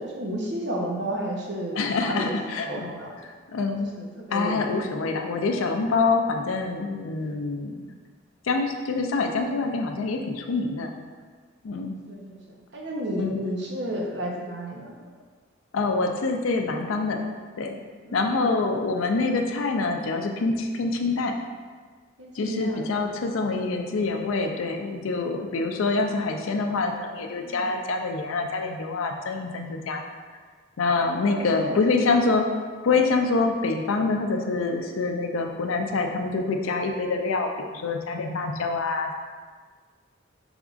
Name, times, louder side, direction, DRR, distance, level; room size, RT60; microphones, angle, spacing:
voice 1, 0.0-3.1 3.9-4.7 6.2-6.3 12.1-12.4 12.7-14.9 18.1-18.5 22.2-23.2 27.4-27.7 31.2-31.8, right 1 dB, 60° right, -1 dB, 0.7 m, -32 dB
voice 2, 1.8-2.9 3.5-3.9 4.3-7.9 8.5-10.9 11.6-12.0 13.2-13.4 15.7-17.3 17.6-17.8 18.1-21.4 22.4-30.1 30.8-32.5 32.8-39.1, left 3 dB, 90° left, 4 dB, 0.4 m, -26 dB
5.0 x 3.5 x 2.4 m, 1.5 s
head